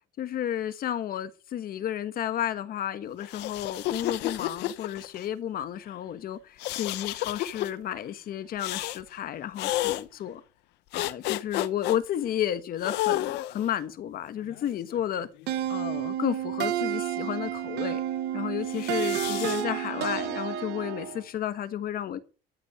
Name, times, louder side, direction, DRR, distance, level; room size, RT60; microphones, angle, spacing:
voice 1, 0.2-10.4 10.9-15.3 15.7-18.0 18.3-22.2, left 10 dB, 60° left, 1.4 m, -32 dB
sound 1, 3.2-5.2 6.6-7.7 8.6-9.0 9.6-10.0 10.9-12.0 12.8-13.7 14.5-15.6 18.7-19.6, left 15 dB, 90° left, 0.8 m, -31 dB
sound 2, 15.5-21.2, right 11 dB, 85° right, 1.1 m, -31 dB
13.5 x 5.4 x 8.6 m
cardioid pair, 110°, 17 cm